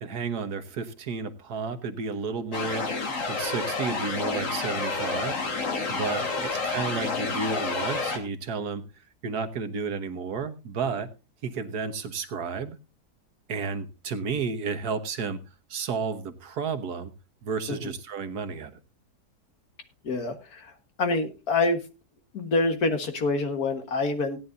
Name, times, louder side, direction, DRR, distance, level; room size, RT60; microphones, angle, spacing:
voice 1, 0.0-2.9 3.3-5.4 5.9-8.8 9.2-11.1 11.4-12.8 13.5-15.4 15.7-17.1 17.4-18.7, right 5 dB, 80° right, 9 dB, 1.7 m, -32 dB
sound 1, 2.5-8.2, left 3 dB, 55° left, 2.1 m, -29 dB
voice 2, 20.0-20.7 21.0-21.8 22.3-24.4, left 3 dB, 70° left, 6 dB, 2.0 m, -26 dB
17.5 x 10.0 x 2.6 m, 0.27 s
omnidirectional pair, 1.7 m